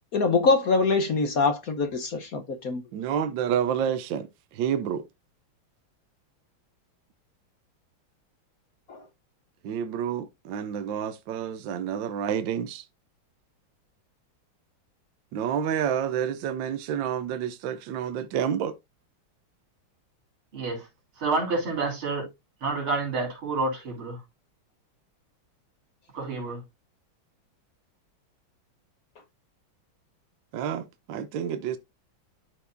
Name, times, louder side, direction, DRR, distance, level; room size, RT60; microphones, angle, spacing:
voice 1, 0.1-2.8 8.9-9.0, left 4 dB, 55° left, 1.1 m, -24 dB
voice 2, 2.9-5.1 9.6-12.9 15.3-18.8 30.5-31.8, right 8 dB, 70° right, 1.4 m, -29 dB
voice 3, 20.5-20.9 21.2-22.3 22.6-24.2 26.1-26.6, right 3 dB, 90° right, 4.3 m, -28 dB
12.5 x 4.6 x 2.6 m
omnidirectional pair, 2.2 m